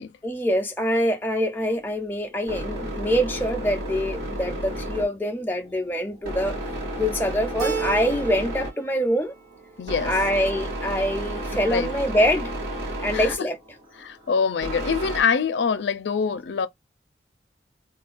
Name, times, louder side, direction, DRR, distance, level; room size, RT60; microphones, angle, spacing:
voice 1, 0.2-6.6 7.0-9.3 10.0-12.5 13.0-13.6, equal, 10° left, 0.5 m, -24 dB
sound 1, 1.6-15.2, right 1 dB, 85° right, 1.8 m, -33 dB
Keyboard (musical), 7.6-8.7 9.0-9.8, right 5 dB, 45° right, 1.4 m, -32 dB
voice 2, 9.8-10.1 11.7-11.9 13.1-13.5 14.0-16.7, left 6 dB, 85° left, 0.4 m, -24 dB
3.2 x 2.3 x 2.4 m
head